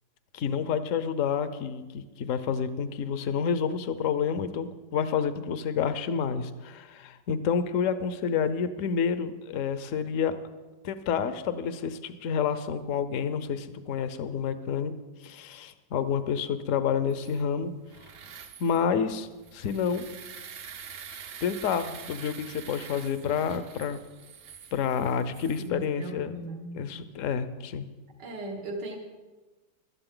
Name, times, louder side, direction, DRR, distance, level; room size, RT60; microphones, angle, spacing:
voice 1, 0.3-10.4 10.8-14.9 15.2-17.7 18.6-20.1 21.4-24.0 24.7-26.3 26.7-27.9, left 7 dB, 60° left, 12 dB, 0.9 m, -29 dB
sound 1, 17.1-25.7, right 7 dB, 55° right, 0.9 m, -46 dB
voice 2, 25.6-26.8 28.2-29.0, right 2 dB, 75° right, 2 dB, 2.3 m, -37 dB
17.0 x 12.5 x 3.8 m, 1.2 s
omnidirectional pair, 1.9 m